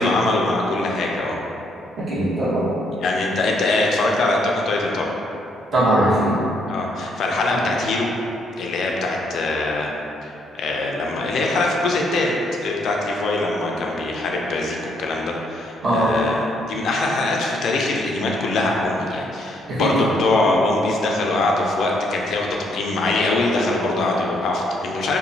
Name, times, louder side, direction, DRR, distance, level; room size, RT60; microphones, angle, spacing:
voice 1, 0.0-1.4 3.0-5.1 6.7-8.1 8.6-9.9 10.2-12.3 12.6-25.2, left 2 dB, 70° left, -1 dB, 0.4 m, -22 dB
voice 2, 2.0-2.7 5.7-6.4 7.5-7.6 15.8-16.2 19.7-20.1, right 1 dB, 55° right, -11 dB, 1.1 m, -20 dB
2.9 x 2.2 x 2.6 m, 2.8 s
cardioid pair, 90°, 0 cm